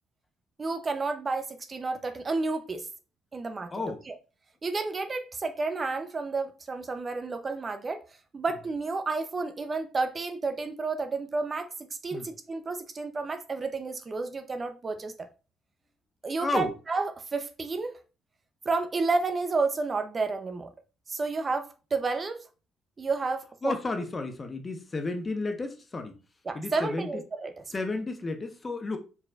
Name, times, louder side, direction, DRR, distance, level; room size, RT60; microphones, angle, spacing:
voice 1, 0.6-2.9 3.3-3.7 4.1-4.2 4.6-8.0 8.3-11.7 12.0-15.3 16.2-18.0 18.6-20.7 21.1-22.4 23.0-23.8 26.5-27.5, right 3 dB, 35° right, 0.7 m, -31 dB
voice 2, 3.7-4.0 12.1-12.3 16.4-16.7 23.6-26.2 26.5-27.1 27.7-29.0, left 3 dB, 35° left, 1.0 m, -32 dB
4.3 x 4.2 x 2.4 m
supercardioid pair, 60°, 0 cm